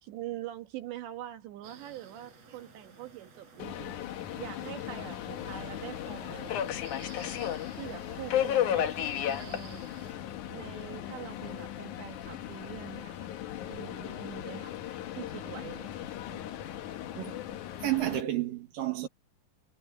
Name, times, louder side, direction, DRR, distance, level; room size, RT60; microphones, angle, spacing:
voice 1, 0.0-4.0 4.4-6.9 7.7-8.9 9.2-9.8 10.5-13.3 13.7-14.8 15.2-15.9, right 13 dB, 90° right, 4.0 m, -44 dB
sound 1, 1.6-10.1, right 5 dB, 40° right, 4.8 m, -54 dB
Subway metro underground, 3.6-18.2, left 10 dB, 65° left, 2.1 m, -35 dB
voice 2, 17.8-19.1, right 14 dB, 60° right, 3.0 m, -31 dB
omnidirectional pair, 4.9 m